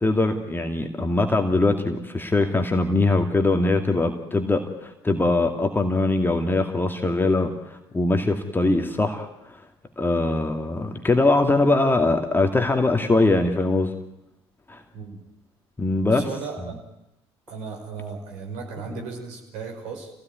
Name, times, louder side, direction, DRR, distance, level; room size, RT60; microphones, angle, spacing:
voice 1, 0.0-9.3 10.0-13.9 14.7-14.8 15.8-16.2, left 2 dB, 15° left, 5 dB, 2.4 m, -22 dB
voice 2, 16.0-16.8 17.5-20.1, right 5 dB, 60° right, 2 dB, 5.9 m, -35 dB
28.5 x 17.5 x 9.5 m, 0.90 s
figure-of-eight pair, 55°, 14 cm